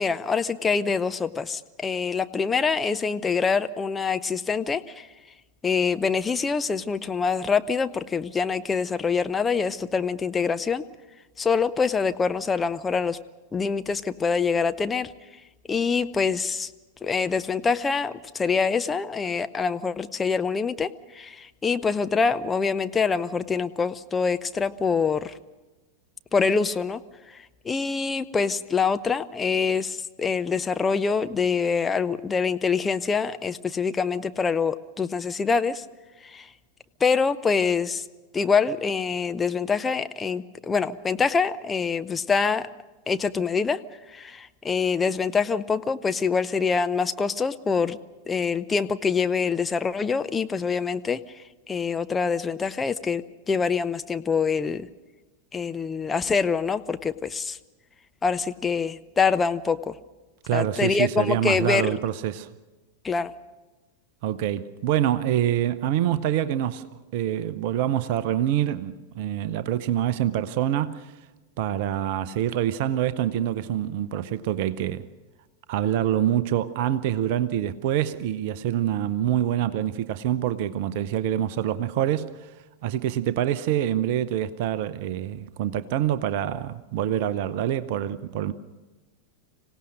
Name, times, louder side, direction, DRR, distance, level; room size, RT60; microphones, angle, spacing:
voice 1, 0.0-5.1 5.6-10.8 11.4-13.2 13.5-15.1 15.7-16.7 17.0-25.3 26.3-27.0 27.3-35.8 36.2-36.5 37.0-38.0 38.3-42.7 43.1-43.8 44.1-48.0 48.3-51.2 51.7-54.9 55.5-57.6 58.2-60.0 60.5-61.9 63.0-63.3, left 5 dB, 15° left, 0.6 m, -25 dB
voice 2, 60.4-62.5 64.2-66.8 67.1-71.1 71.6-75.1 75.7-82.5 82.8-88.5, right 11 dB, 50° right, 0.7 m, -26 dB
25.5 x 17.5 x 6.4 m
figure-of-eight pair, 90°, 0 cm